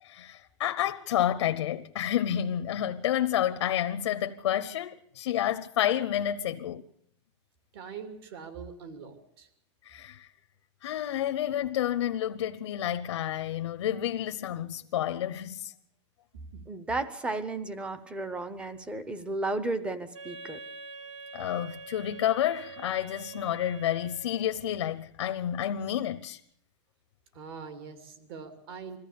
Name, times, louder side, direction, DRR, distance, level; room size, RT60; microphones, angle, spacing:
voice 1, 0.0-6.8 9.8-10.3 10.8-15.7 21.3-26.4, left 11 dB, 75° left, 0.9 m, -30 dB
voice 2, 7.7-9.5 16.5-16.6 27.3-29.0, right 6 dB, 50° right, 2.8 m, -43 dB
voice 3, 16.7-20.6, right 2 dB, 5° right, 0.9 m, -33 dB
Wind instrument woodwind instrument, 20.1-24.6, right 4 dB, 80° right, 1.9 m, -45 dB
21.5 x 14.5 x 8.5 m
supercardioid pair, 165°, 16 cm